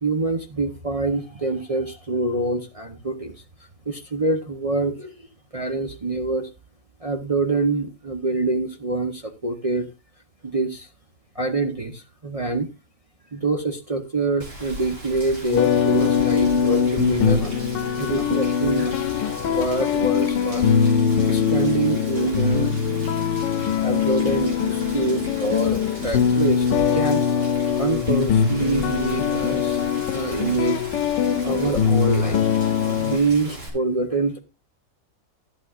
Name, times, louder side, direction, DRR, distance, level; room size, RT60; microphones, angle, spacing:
voice 1, 0.0-3.3 3.9-5.3 5.5-6.5 7.0-9.9 10.4-10.9 11.3-12.7 13.3-17.6 18.0-19.0 19.4-20.7 21.3-23.0 23.8-27.2 27.8-29.9 30.1-30.8 31.4-32.5 32.8-34.4, right 3 dB, 40° right, 0.5 m, -25 dB
Rain, 14.4-33.7, right 1 dB, 70° right, 3.7 m, -38 dB
sound 1, 15.5-33.2, left 7 dB, 85° left, 1.4 m, -22 dB
11.5 x 11.5 x 2.4 m
omnidirectional pair, 1.9 m